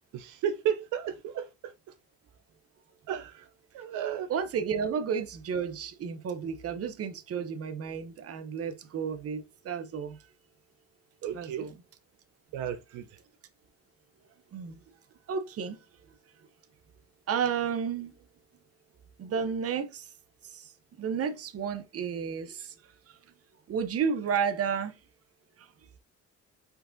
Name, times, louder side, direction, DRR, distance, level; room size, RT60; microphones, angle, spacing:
voice 1, 0.1-1.7 3.1-3.5 3.7-4.3 11.2-11.7 12.5-13.1, right 9 dB, 85° right, 0.5 m, -33 dB
voice 2, 4.3-10.2 11.3-11.8 14.5-14.8 15.3-15.8 17.3-18.1 19.2-20.1 20.4-22.7 23.7-24.9 25.6-25.7, right 7 dB, 50° right, 0.8 m, -32 dB
4.7 x 4.0 x 2.6 m
cardioid pair, 90°, 30 cm